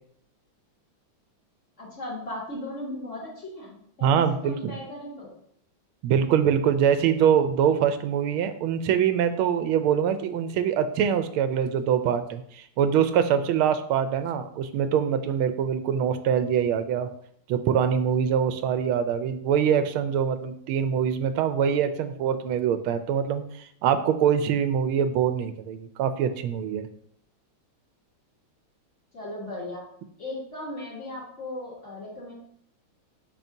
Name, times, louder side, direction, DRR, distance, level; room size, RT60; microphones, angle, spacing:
voice 1, 1.8-5.3 29.1-29.8 30.2-32.3, left 1 dB, 35° left, -7 dB, 3.0 m, -37 dB
voice 2, 4.0-4.8 6.0-17.1 17.5-26.9, right 8 dB, 90° right, 10 dB, 1.5 m, -24 dB
8.7 x 5.9 x 2.7 m, 0.67 s
omnidirectional pair, 2.3 m